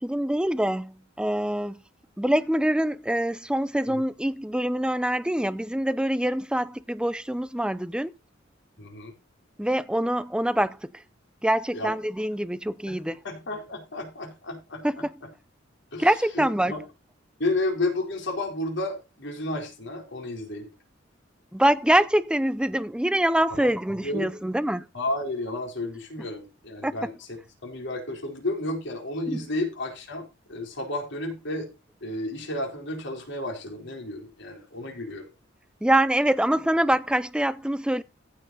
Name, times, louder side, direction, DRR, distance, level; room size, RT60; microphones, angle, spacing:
voice 1, 0.0-1.8 2.2-8.1 9.6-10.9 11.4-13.2 14.8-15.0 16.0-16.7 21.5-24.8 26.8-26.9 29.3-29.4 35.8-38.0, right 1 dB, 5° right, 0.5 m, -24 dB
voice 2, 8.8-9.1 11.7-11.9 12.9-15.3 15.9-16.8 17.4-20.7 23.5-23.7 24.0-24.4 24.9-27.3 27.6-31.7 32.0-35.3, left 2 dB, 65° left, 4.4 m, -32 dB
15.0 x 5.8 x 4.2 m
head